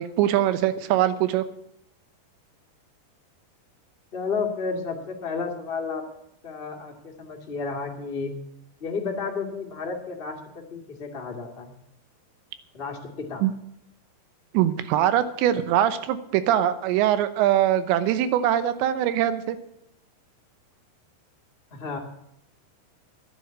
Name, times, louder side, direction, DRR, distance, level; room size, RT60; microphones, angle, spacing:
voice 1, 0.0-1.4 13.4-13.5 14.5-19.6, right 11 dB, 85° right, 12 dB, 3.1 m, -22 dB
voice 2, 4.1-6.0 6.4-8.3 8.8-11.7 12.7-13.4 21.7-22.0, left 4 dB, 65° left, 0 dB, 0.5 m, -32 dB
11.0 x 9.8 x 8.5 m, 0.77 s
omnidirectional pair, 5.0 m